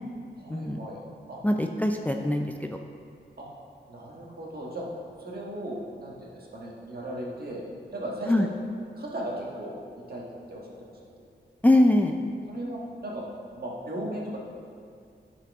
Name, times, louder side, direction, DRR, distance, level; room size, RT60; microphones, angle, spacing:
voice 1, 0.4-1.0 1.3-1.4 3.4-3.5 3.9-4.8 5.2-7.6 7.9-8.4 9.0-9.8 10.1-10.9 12.5-13.2 13.5-14.4, right 1 dB, 55° right, -4 dB, 1.6 m, -36 dB
voice 2, 1.4-2.5 8.3-8.5 11.6-12.2, left 1 dB, 10° left, 4 dB, 0.4 m, -22 dB
10.0 x 4.8 x 3.5 m, 2.3 s
cardioid pair, 70°, 19 cm